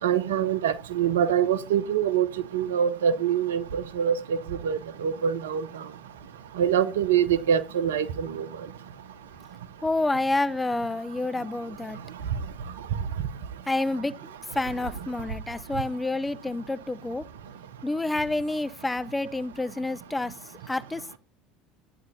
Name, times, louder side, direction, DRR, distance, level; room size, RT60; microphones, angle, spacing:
voice 1, 0.0-2.3 2.5-4.1 4.6-5.6 6.6-8.5, right 8 dB, 75° right, 0.8 m, -24 dB
voice 2, 9.8-12.0 13.7-17.2 17.8-20.3 20.7-21.0, left 2 dB, 10° left, 0.7 m, -28 dB
13.5 x 9.5 x 2.7 m
figure-of-eight pair, 65°, 0 cm